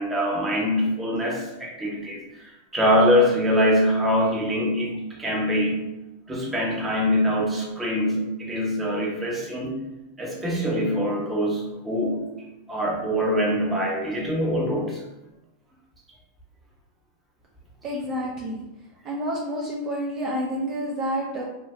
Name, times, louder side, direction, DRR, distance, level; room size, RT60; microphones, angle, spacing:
voice 1, 0.0-2.4 2.7-5.9 6.3-9.8 10.2-12.3 12.7-15.0, equal, 10° right, -3 dB, 0.8 m, -24 dB
voice 2, 17.8-18.6 19.0-21.4, equal, 40° right, -3 dB, 0.5 m, -29 dB
2.6 x 2.1 x 2.9 m, 0.97 s
hypercardioid pair, 120°, 0 cm